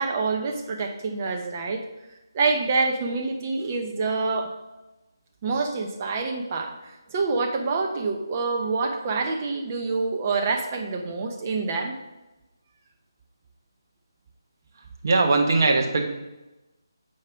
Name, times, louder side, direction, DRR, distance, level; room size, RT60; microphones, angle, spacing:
voice 1, 0.0-1.8 2.3-4.5 5.4-11.9, right 4 dB, 30° right, 3 dB, 0.8 m, -26 dB
voice 2, 15.0-16.1, right 3 dB, 50° right, 2 dB, 1.1 m, -20 dB
7.4 x 4.8 x 3.6 m, 1.0 s
figure-of-eight pair, 160°, 2 cm